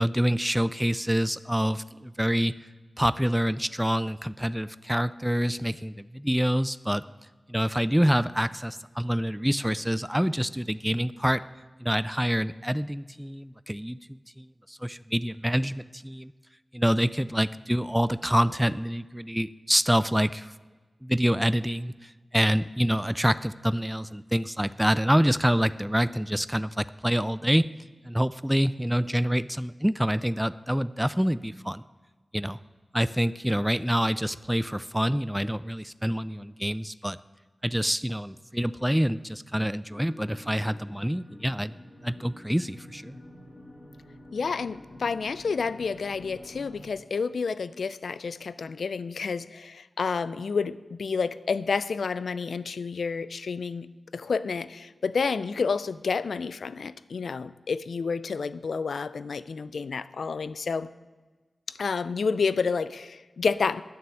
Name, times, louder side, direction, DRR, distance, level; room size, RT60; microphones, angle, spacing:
voice 1, 0.0-2.5 3.0-7.0 7.5-11.4 11.8-14.0 14.4-16.3 16.7-20.5 21.0-27.7 28.0-31.8 32.3-32.6 32.9-37.2 37.6-41.7 42.0-43.2, equal, 5° right, 15 dB, 0.3 m, -26 dB
sound 1, 39.9-46.9, left 1 dB, 40° left, 2.4 m, -48 dB
voice 2, 44.3-60.9 61.7-63.8, left 5 dB, 85° left, 16 dB, 0.4 m, -30 dB
9.4 x 6.8 x 9.0 m, 1.3 s
cardioid pair, 55°, 0 cm